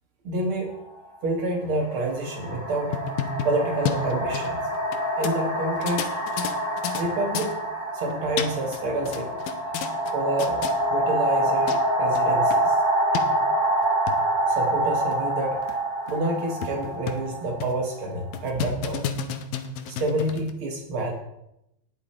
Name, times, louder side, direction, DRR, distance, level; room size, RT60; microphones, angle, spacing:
voice 1, 0.2-0.7 1.2-3.0 3.4-4.7 5.1-6.5 7.0-7.5 7.9-9.6 10.1-10.6 10.9-12.8 14.5-15.6 16.1-19.1 19.9-21.1, right 2 dB, 90° right, 1 dB, 1.1 m, -28 dB
sound 1, 0.7-0.9 1.8-18.5, right 1 dB, 10° left, 3.9 m, -26 dB
sound 2, 2.7-5.0 5.2-5.3 5.8-7.0 7.3-7.5 8.1-8.8 9.1-10.1 10.4-10.7 11.4-11.5 11.7-11.8 12.1-12.2 12.5-12.6 13.1-13.2 13.8-14.2 14.7-14.8 15.1-15.2 15.7-15.8 16.1-16.2 16.6-17.3 17.6-17.9 18.3-20.5, left 8 dB, 75° left, 2.3 m, -31 dB
18.5 x 7.1 x 4.2 m, 0.83 s
omnidirectional pair, 4.6 m